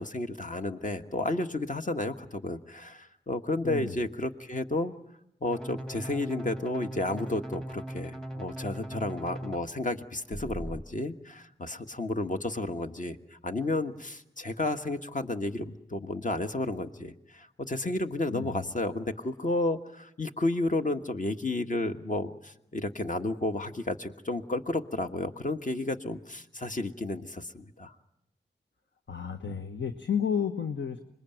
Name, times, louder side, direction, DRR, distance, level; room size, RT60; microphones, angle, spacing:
voice 1, 0.0-4.9 5.4-27.9, left 2 dB, 45° left, 6 dB, 1.5 m, -32 dB
voice 2, 3.6-3.9 18.3-18.7 29.1-31.0, left 7 dB, 75° left, 7 dB, 1.3 m, -31 dB
sound 1, 5.5-9.6 10.3-10.8, right 1 dB, 5° left, 1.2 m, -39 dB
26.0 x 21.5 x 9.2 m, 0.83 s
cardioid pair, 50°, 19 cm